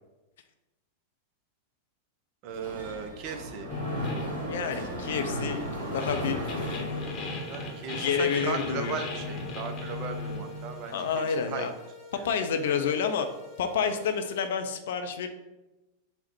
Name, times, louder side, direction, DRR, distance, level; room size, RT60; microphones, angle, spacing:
voice 1, 2.4-3.7 7.5-11.7 12.2-12.3, right 6 dB, 40° right, 6 dB, 0.4 m, -37 dB
Mechanisms, 2.5-7.7, equal, 65° right, 1.0 m, -36 dB
sound 1, 3.7-11.4, left 2 dB, 30° left, 0.8 m, -37 dB
voice 2, 4.4-7.1 7.9-9.0 10.9-11.7 12.1-13.3 13.6-15.3, left 6 dB, 60° left, 7 dB, 0.4 m, -29 dB
sound 2, 5.5-14.5, left 4 dB, 25° right, 1.2 m, -49 dB
3.9 x 2.1 x 4.3 m, 1.0 s
figure-of-eight pair, 90°, 0 cm